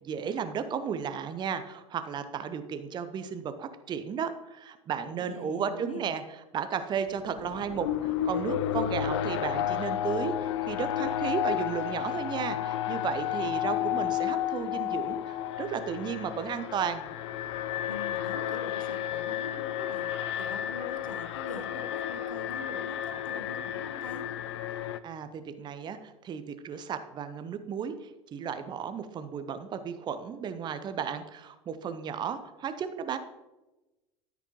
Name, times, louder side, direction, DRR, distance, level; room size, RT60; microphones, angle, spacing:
voice 1, 0.0-17.1 25.0-33.2, right 7 dB, 25° right, 10 dB, 0.7 m, -34 dB
voice 2, 5.1-6.1 17.9-20.0 20.3-24.3, left 3 dB, 85° left, 7 dB, 0.9 m, -43 dB
Alarm, 7.1-25.0, left 11 dB, 60° left, 0.5 m, -32 dB
13.0 x 5.9 x 3.0 m, 1.0 s
figure-of-eight pair, 75°, 17 cm